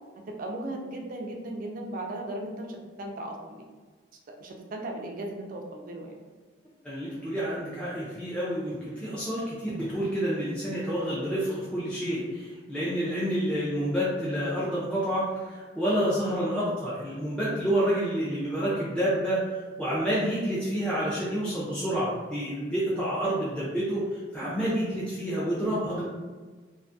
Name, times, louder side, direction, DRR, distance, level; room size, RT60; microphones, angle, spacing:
voice 1, 0.3-3.7 4.1-6.2, right 1 dB, 50° right, 1 dB, 0.4 m, -37 dB
voice 2, 6.8-26.0, equal, 5° left, -10 dB, 0.5 m, -29 dB
2.6 x 2.3 x 2.5 m, 1.4 s
head